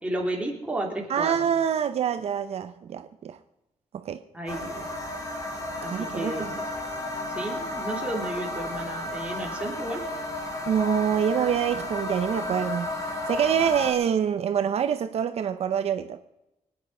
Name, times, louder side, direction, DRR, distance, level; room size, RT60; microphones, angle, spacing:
voice 1, 0.0-1.4 4.3-4.9 5.8-6.6 7.1-10.0, right 1 dB, 10° right, 3.0 m, -33 dB
voice 2, 1.1-3.4 3.9-4.2 5.9-6.5 10.7-12.9 13.3-16.2, right 8 dB, 60° right, 0.7 m, -26 dB
sound 1, 4.5-13.9, left 1 dB, 25° left, 2.5 m, -32 dB
24.0 x 9.4 x 5.4 m
wide cardioid pair, 170°, 12 cm